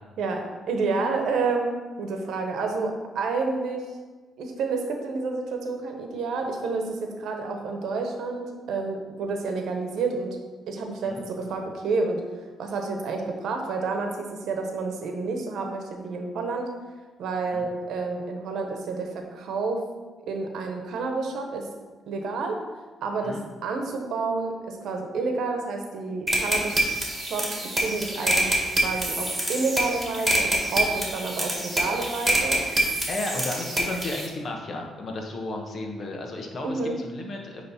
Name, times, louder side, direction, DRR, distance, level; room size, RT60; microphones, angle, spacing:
voice 1, 0.2-3.9 4.4-10.3 10.7-12.2 12.6-16.7 17.2-19.8 20.3-21.7 22.1-22.6 23.0-27.5 27.7-28.5 28.8-32.6 36.6-37.0, right 4 dB, 75° right, 3 dB, 1.0 m, -29 dB
sound 1, 26.3-34.3, right 1 dB, 15° right, 1.8 m, -26 dB
voice 2, 33.0-37.6, left 2 dB, 50° left, 2 dB, 1.1 m, -33 dB
9.4 x 3.2 x 4.2 m, 1.4 s
cardioid pair, 90°, 0 cm